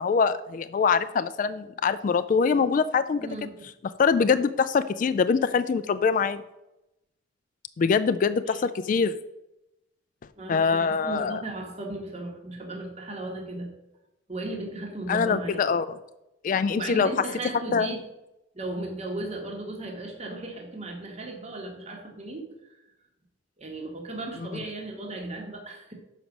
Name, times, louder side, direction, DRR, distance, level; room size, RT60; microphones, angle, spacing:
voice 1, 0.0-3.3 4.0-6.4 7.8-9.2 10.5-11.4 15.1-15.9 16.4-17.1 17.7-17.9, left 5 dB, 45° left, 11 dB, 0.3 m, -23 dB
voice 2, 3.2-3.7 8.5-8.6 10.4-13.7 14.3-15.6 16.7-18.0 18.5-22.8 23.6-25.9, right 2 dB, 35° right, 1 dB, 1.3 m, -36 dB
6.9 x 5.2 x 6.0 m, 0.91 s
head